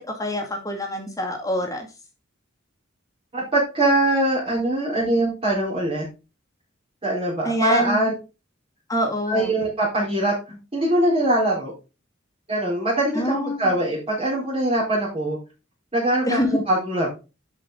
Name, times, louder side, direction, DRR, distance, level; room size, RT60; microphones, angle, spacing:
voice 1, 0.0-1.9 7.4-8.1 8.9-9.6 13.1-13.7 16.2-16.6, equal, 15° left, 2 dB, 2.2 m, -25 dB
voice 2, 3.3-6.1 7.0-8.1 9.3-11.7 12.5-15.4 15.9-17.1, right 1 dB, 25° right, -7 dB, 3.9 m, -22 dB
11.0 x 5.6 x 3.8 m, 0.29 s
head